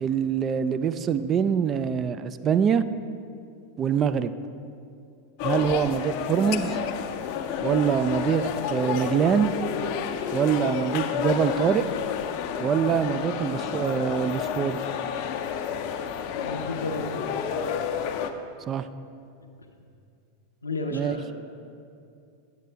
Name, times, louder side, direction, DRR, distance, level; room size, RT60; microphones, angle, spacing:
voice 1, 0.0-2.8 3.8-4.3 5.4-6.8 7.6-9.5 10.3-11.8 12.6-14.8 18.7-18.9 20.9-21.2, right 8 dB, 30° right, 12 dB, 0.3 m, -24 dB
sound 1, 5.4-18.3, left 8 dB, 55° left, 0.5 m, -30 dB
voice 2, 16.3-17.3 20.6-21.3, left 2 dB, 90° left, 3 dB, 0.7 m, -32 dB
8.2 x 8.2 x 3.4 m, 2.5 s
hypercardioid pair, 90°, 0 cm